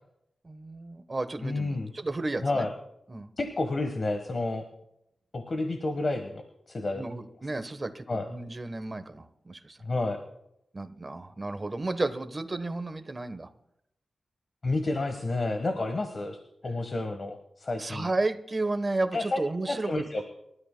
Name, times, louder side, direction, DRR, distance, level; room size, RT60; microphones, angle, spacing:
voice 1, 0.4-2.7 3.1-3.3 6.9-9.8 10.7-13.5 17.8-20.1, right 2 dB, 30° right, 9 dB, 1.1 m, -32 dB
voice 2, 1.4-1.9 2.4-2.7 3.4-4.6 5.3-6.4 6.7-7.0 8.1-8.3 9.8-10.2 14.6-16.4 16.6-18.1 19.1-20.2, left 2 dB, 50° left, 5 dB, 1.3 m, -30 dB
28.5 x 13.0 x 2.2 m, 0.83 s
wide cardioid pair, 90°, 0 cm